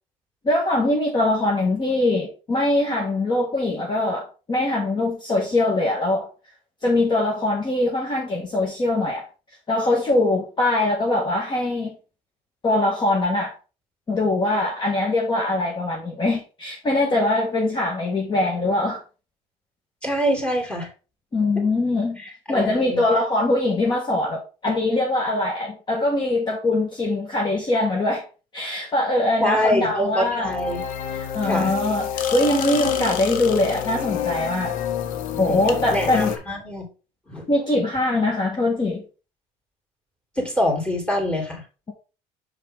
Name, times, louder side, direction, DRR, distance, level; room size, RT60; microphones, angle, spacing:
voice 1, 0.4-6.3 6.8-9.3 9.7-12.0 12.6-13.5 14.1-19.0 21.3-22.2 22.5-28.3 28.5-30.5 31.1-34.7 35.4-36.3 37.5-39.0, left 2 dB, 30° left, 1.6 m, -22 dB
voice 2, 20.0-20.9 22.2-23.0 29.4-30.8 31.4-31.7 35.5-35.6 35.9-36.9 37.3-37.5 40.4-41.6, equal, 5° left, 2.8 m, -25 dB
sound 1, 30.4-36.4, left 9 dB, 70° left, 0.9 m, -28 dB
5.6 x 5.4 x 3.6 m
supercardioid pair, 105°, 15 cm